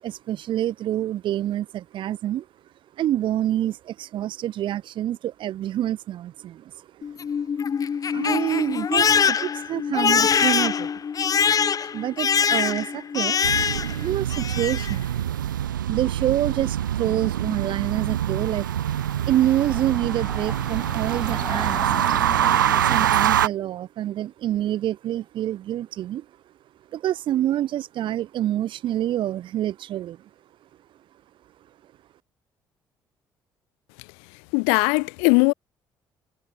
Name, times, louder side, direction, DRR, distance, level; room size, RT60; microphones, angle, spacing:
voice 1, 0.0-2.5 3.0-6.8 8.1-10.9 11.9-13.4 14.0-15.1 15.9-18.7 19.3-22.1 22.9-26.3 26.9-30.3, right 12 dB, 50° right, 1.1 m, -27 dB
Crying sobbing, 7.0-14.0 14.3-14.9, left 7 dB, 35° left, 1.0 m, -23 dB
sound 1, 13.4-23.5, right 11 dB, 80° right, 1.2 m, -25 dB
Train, 18.7-23.5, right 1 dB, 5° right, 3.4 m, -36 dB
voice 2, 34.5-35.5, left 40 dB or more, 65° left, 0.4 m, -19 dB
figure-of-eight pair, 50°, 10 cm